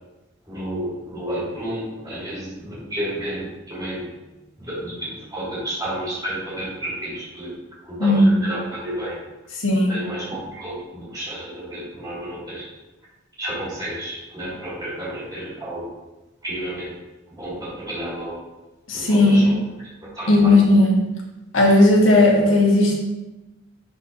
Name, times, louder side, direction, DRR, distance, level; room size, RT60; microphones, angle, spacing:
voice 1, 0.5-4.1 4.6-9.2 9.9-12.7 13.4-15.9 16.4-16.9 17.3-18.4 18.9-19.6 20.1-20.8, right 1 dB, 20° right, -8 dB, 2.2 m, -31 dB
voice 2, 8.0-8.4 9.6-9.9 18.9-19.5 20.3-21.0 21.5-22.9, left 1 dB, 85° left, -2 dB, 1.7 m, -15 dB
11.0 x 4.2 x 3.0 m, 1.1 s
head